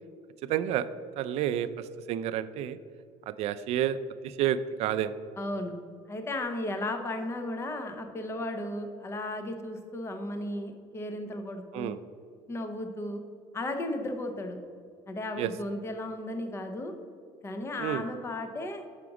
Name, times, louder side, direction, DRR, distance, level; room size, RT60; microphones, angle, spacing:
voice 1, 0.5-0.9 1.2-1.7 2.1-2.8 3.3-4.0 4.2-5.2 11.7-12.0 15.4-15.5 17.8-18.0, right 11 dB, 55° right, 12 dB, 0.4 m, -29 dB
voice 2, 5.4-5.8 6.1-11.9 12.5-13.2 13.5-14.6 15.1-16.9 17.4-18.8, left 1 dB, 20° left, 6 dB, 0.7 m, -35 dB
6.0 x 5.0 x 4.8 m, 2.2 s
cardioid pair, 140°, 12 cm